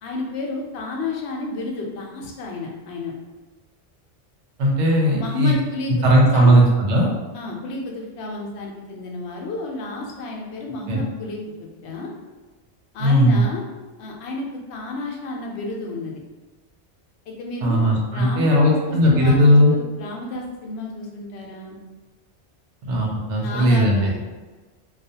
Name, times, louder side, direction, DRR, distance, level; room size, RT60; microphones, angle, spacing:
voice 1, 0.0-3.1 5.1-6.6 7.3-11.4 11.8-12.1 12.9-13.6 14.0-16.2 17.3-21.8 23.4-24.2, left 2 dB, 70° left, -1 dB, 0.8 m, -31 dB
voice 2, 4.6-5.5 6.0-7.1 10.9-11.0 13.0-13.4 17.6-19.7 22.8-24.2, equal, 75° right, -2 dB, 1.0 m, -17 dB
2.3 x 2.3 x 2.7 m, 1.3 s
omnidirectional pair, 1.2 m